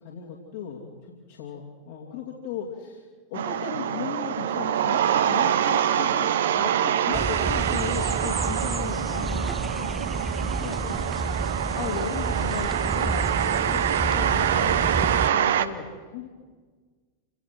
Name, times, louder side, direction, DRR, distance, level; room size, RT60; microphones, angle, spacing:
voice 1, 0.0-11.1 11.5-16.3, left 7 dB, 55° left, -3 dB, 2.9 m, -37 dB
sound 1, 3.3-15.7, right 10 dB, 60° right, 0.9 m, -25 dB
sound 2, 7.1-15.3, right 3 dB, 10° right, 0.6 m, -30 dB
27.5 x 18.5 x 6.1 m, 1.5 s
figure-of-eight pair, 90°, 0 cm